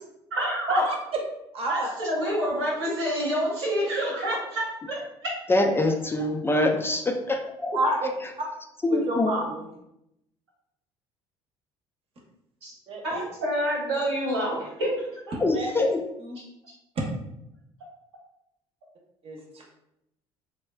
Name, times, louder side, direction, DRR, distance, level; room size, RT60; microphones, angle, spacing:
voice 1, 0.3-0.8 1.7-5.3 12.6-12.7 13.0-15.3, right 1 dB, 85° right, -4 dB, 1.0 m, -28 dB
voice 2, 1.5-1.9 7.7-8.1 8.9-9.7 12.9-13.2 15.5-15.9 16.2-16.4 19.2-19.7, right 1 dB, 45° right, 0 dB, 0.8 m, -28 dB
voice 3, 5.5-7.8 8.8-9.3 15.4-16.0, left 2 dB, 15° left, 3 dB, 0.3 m, -24 dB
3.1 x 2.2 x 2.3 m, 0.83 s
hypercardioid pair, 65°, 14 cm